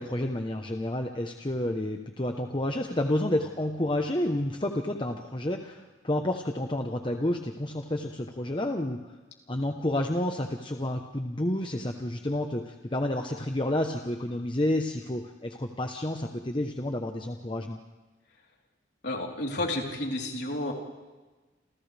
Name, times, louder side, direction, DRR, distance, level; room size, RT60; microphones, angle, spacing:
voice 1, 0.0-9.1 9.5-17.8, left 1 dB, 25° left, 3 dB, 1.0 m, -30 dB
voice 2, 19.0-20.7, left 1 dB, 60° left, -1 dB, 3.8 m, -31 dB
29.0 x 28.0 x 3.5 m, 1.3 s
head